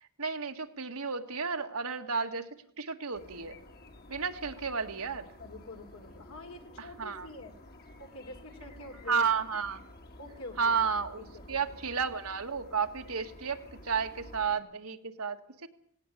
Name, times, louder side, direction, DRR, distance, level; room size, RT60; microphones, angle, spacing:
voice 1, 0.2-2.5 2.8-3.6 4.1-5.3 6.8-7.3 9.1-9.9 10.6-13.6 13.8-15.7, right 5 dB, 80° right, 6 dB, 1.8 m, -32 dB
sound 1, 3.1-14.6, left 1 dB, 45° left, 2.1 m, -52 dB
voice 2, 5.1-7.6 8.0-9.3 10.2-10.8 11.2-11.6, left 2 dB, 70° left, 4 dB, 3.2 m, -46 dB
18.0 x 17.5 x 8.5 m, 0.68 s
head